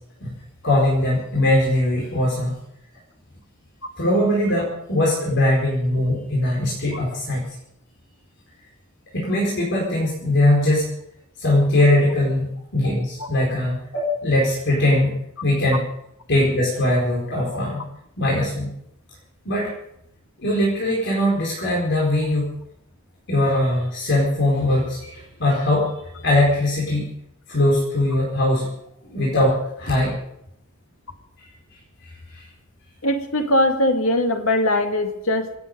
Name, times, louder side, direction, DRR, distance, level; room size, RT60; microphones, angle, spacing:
voice 1, 0.6-2.5 4.0-7.4 9.1-10.8 11.4-15.2 15.4-15.8 16.3-17.8 18.2-18.7 19.4-19.7 20.4-22.5 23.3-27.0 27.5-28.7 29.1-30.1 32.3-32.4, left 1 dB, 60° left, -4 dB, 4.7 m, -21 dB
voice 2, 33.0-35.5, left 1 dB, 85° left, 5 dB, 2.2 m, -21 dB
27.5 x 9.7 x 5.4 m, 0.78 s
head